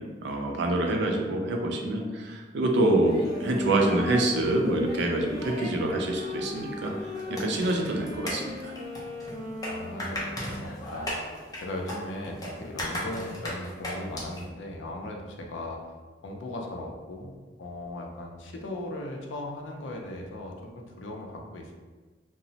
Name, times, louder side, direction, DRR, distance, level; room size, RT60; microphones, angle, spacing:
voice 1, 0.2-3.2 3.4-6.9 7.3-8.7, right 2 dB, 65° right, 2 dB, 0.4 m, -26 dB
sound 1, 3.1-14.5, left 1 dB, 20° left, 0.5 m, -39 dB
Wind instrument woodwind instrument, 3.2-10.8, left 1 dB, 20° right, 1.1 m, -38 dB
voice 2, 9.7-11.2 11.6-15.9 16.2-21.7, left 1 dB, 80° left, 1 dB, 0.4 m, -38 dB
2.9 x 2.0 x 2.7 m, 1.4 s
head